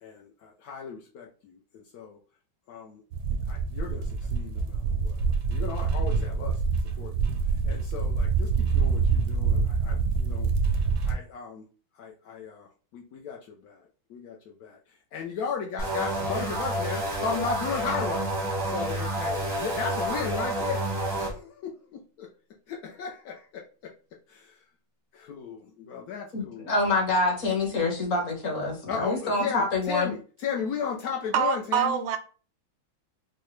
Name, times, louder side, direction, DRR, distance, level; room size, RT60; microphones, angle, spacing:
voice 1, 0.0-2.2 2.7-3.0 3.3-5.2 5.5-6.6 7.0-7.3 7.6-10.5 11.0-11.7 11.9-13.8 14.1-20.8 21.2-21.8 22.7-23.9 24.3-24.6 25.1-26.7 28.9-32.1, left 6 dB, 75° left, 0.8 m, -35 dB
sound 1, 3.1-11.1, right 5 dB, 70° right, 0.9 m, -26 dB
sound 2, 15.8-21.3, right 1 dB, 25° right, 0.5 m, -29 dB
voice 2, 26.3-30.1, left 2 dB, 45° left, 1.3 m, -26 dB
voice 3, 31.3-32.2, right 8 dB, 85° right, 1.4 m, -25 dB
4.7 x 2.1 x 3.0 m
omnidirectional pair, 2.2 m